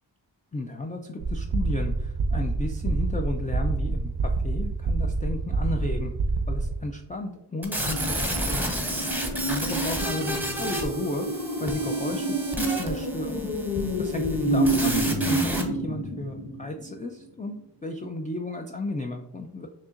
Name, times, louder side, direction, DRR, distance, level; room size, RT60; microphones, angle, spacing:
voice 1, 0.5-6.1 6.5-8.9 9.4-13.5 14.0-19.7, left 2 dB, 20° left, 3 dB, 0.3 m, -34 dB
sound 1, 1.2-6.8, right 3 dB, 50° right, 0.5 m, -27 dB
sound 2, 7.6-15.6, right 1 dB, 5° right, 0.8 m, -31 dB
sound 3, 7.8-16.9 17.2-17.3, right 1 dB, 85° left, 0.8 m, -29 dB
6.4 x 2.8 x 2.5 m, 0.85 s
wide cardioid pair, 55°, 44 cm